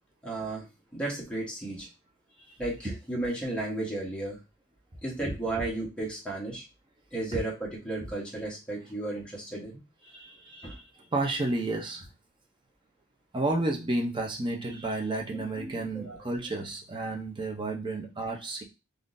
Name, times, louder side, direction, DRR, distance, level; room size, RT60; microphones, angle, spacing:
voice 1, 0.2-0.7 0.9-1.9 2.6-4.4 5.0-6.6 7.1-9.8 10.6-10.8 15.3-16.2, right 2 dB, 5° left, -4 dB, 1.1 m, -34 dB
voice 2, 10.1-12.1 13.3-18.6, right 2 dB, 25° right, 1 dB, 0.7 m, -31 dB
3.6 x 2.6 x 2.6 m, 0.26 s
head